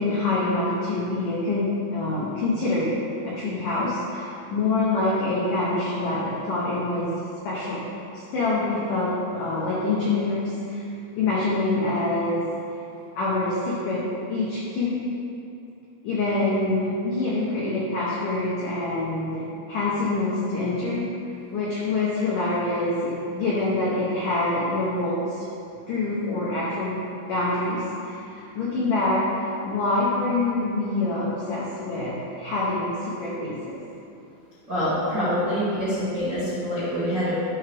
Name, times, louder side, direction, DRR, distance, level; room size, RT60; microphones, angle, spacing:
voice 1, 0.0-2.9 3.3-7.1 7.4-7.8 8.1-10.9 11.2-12.5 13.1-15.1 16.0-21.1 21.5-25.5 25.9-33.8, left 2 dB, 85° left, -6 dB, 1.8 m, -26 dB
voice 2, 34.7-37.4, equal, 40° right, -14 dB, 1.6 m, -25 dB
12.0 x 5.8 x 3.5 m, 2.7 s
omnidirectional pair, 5.4 m